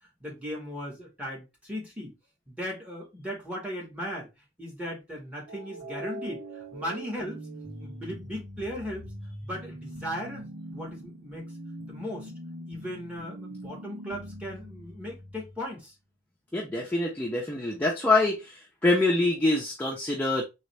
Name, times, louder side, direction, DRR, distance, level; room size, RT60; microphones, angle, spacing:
voice 1, 0.2-2.1 2.5-4.3 4.6-7.4 7.8-9.1 9.4-11.4 11.9-12.3 12.7-15.9, equal, 5° right, 1.7 m, -37 dB
sound 1, 5.5-15.6, equal, 85° right, 1.4 m, -42 dB
voice 2, 16.5-20.4, left 2 dB, 10° left, 0.8 m, -25 dB
4.0 x 3.1 x 3.3 m
head